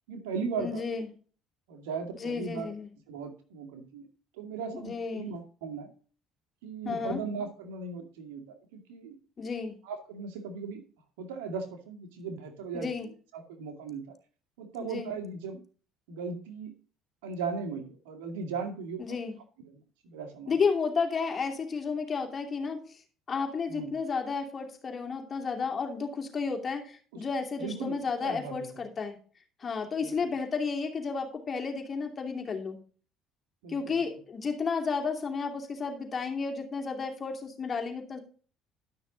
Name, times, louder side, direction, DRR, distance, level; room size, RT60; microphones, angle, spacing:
voice 1, 0.1-0.8 1.7-2.7 3.1-4.1 4.4-5.9 6.6-9.2 9.8-10.8 11.2-14.0 14.6-15.6 16.1-16.7 17.2-19.2 19.7-20.6 23.7-23.9 27.1-27.2 27.6-28.6 30.0-30.1 33.6-34.0, right 5 dB, 90° right, 4 dB, 2.2 m, -37 dB
voice 2, 0.6-1.1 2.1-2.9 4.7-5.3 6.8-7.2 9.4-9.8 12.7-13.1 14.8-15.1 19.0-19.3 20.5-22.8 23.3-29.2 29.6-32.8 33.7-38.2, left 5 dB, 35° left, 3 dB, 2.7 m, -32 dB
12.0 x 6.3 x 4.0 m, 0.40 s
supercardioid pair, 85°, 0 cm